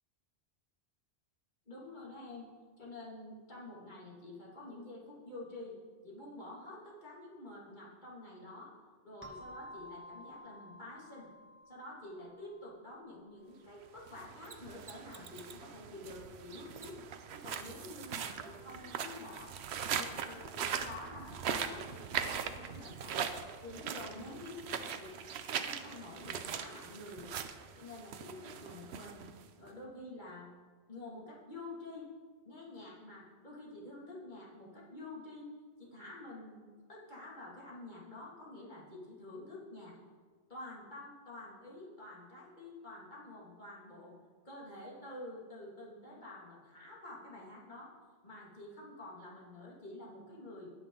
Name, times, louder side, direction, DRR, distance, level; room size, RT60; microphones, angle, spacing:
voice 1, 1.7-2.5 2.8-5.8 6.0-8.7 9.0-11.3 11.7-17.0 17.3-23.2 23.6-25.1 25.6-27.4 27.8-29.3 29.6-30.5 30.9-32.1 32.5-35.5 35.8-40.0 40.5-44.1 44.4-47.9 48.2-50.7, left 2 dB, 45° left, -5 dB, 2.4 m, -48 dB
sound 1, 9.2-13.6, equal, 10° right, 1.1 m, -53 dB
sound 2, 14.0-29.7, right 7 dB, 80° right, 0.9 m, -41 dB
Mechanisms, 14.4-15.7 16.7-17.2 17.5-17.7 20.4-20.5, right 6 dB, 50° right, 0.8 m, -52 dB
17.5 x 6.0 x 3.8 m, 1.5 s
omnidirectional pair, 1.1 m